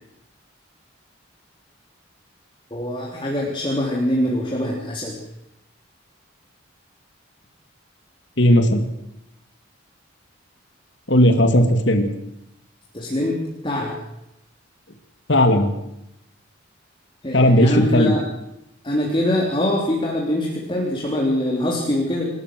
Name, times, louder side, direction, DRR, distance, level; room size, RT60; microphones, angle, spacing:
voice 1, 2.7-5.2 12.9-13.4 13.6-14.0 17.2-18.2 18.8-22.3, left 1 dB, 25° left, -1 dB, 3.6 m, -23 dB
voice 2, 8.4-8.8 11.1-12.1 15.3-15.7 17.3-18.1, left 1 dB, 60° left, 7 dB, 2.6 m, -16 dB
28.0 x 13.5 x 7.8 m, 0.85 s
head